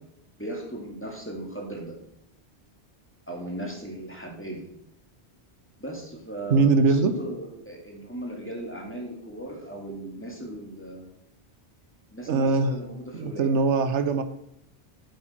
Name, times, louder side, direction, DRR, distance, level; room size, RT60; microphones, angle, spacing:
voice 1, 0.4-1.9 3.3-4.6 5.8-11.1 12.1-13.5, right 1 dB, 10° left, 0 dB, 2.3 m, -37 dB
voice 2, 6.5-7.1 12.3-12.8 13.1-14.2, right 4 dB, 85° right, 10 dB, 1.1 m, -21 dB
8.5 x 8.0 x 4.6 m, 0.78 s
omnidirectional pair, 1.2 m